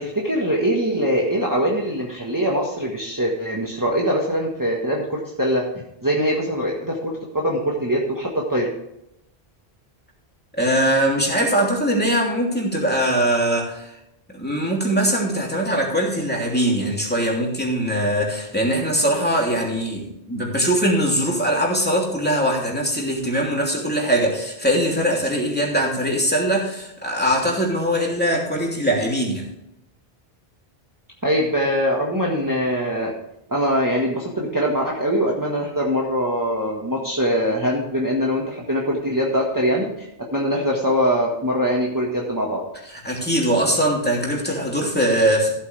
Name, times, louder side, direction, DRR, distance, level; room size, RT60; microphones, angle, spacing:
voice 1, 0.0-5.6 6.0-8.7 31.2-33.1 33.5-40.1 40.3-42.6, equal, 20° right, -3 dB, 1.6 m, -22 dB
voice 2, 10.6-14.0 14.3-29.5 43.0-45.5, right 1 dB, 10° left, -2 dB, 3.0 m, -21 dB
15.0 x 8.4 x 3.4 m, 0.83 s
omnidirectional pair, 1.0 m